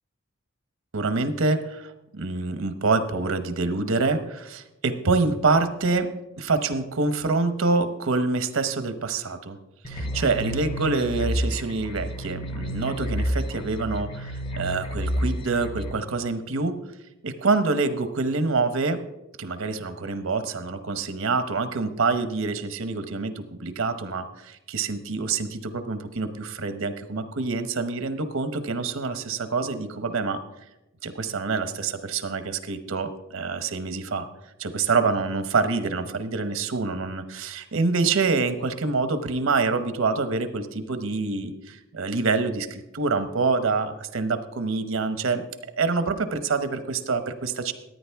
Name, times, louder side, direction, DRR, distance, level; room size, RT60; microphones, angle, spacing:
voice 1, 0.9-6.1 6.4-9.6 9.9-16.8 17.2-19.0 19.4-30.4 31.0-34.3 34.6-45.4 45.8-47.7, right 3 dB, 80° right, 10 dB, 0.9 m, -26 dB
sound 1, 9.8-15.9, equal, 25° left, 0.8 m, -30 dB
14.5 x 9.4 x 3.5 m, 0.97 s
head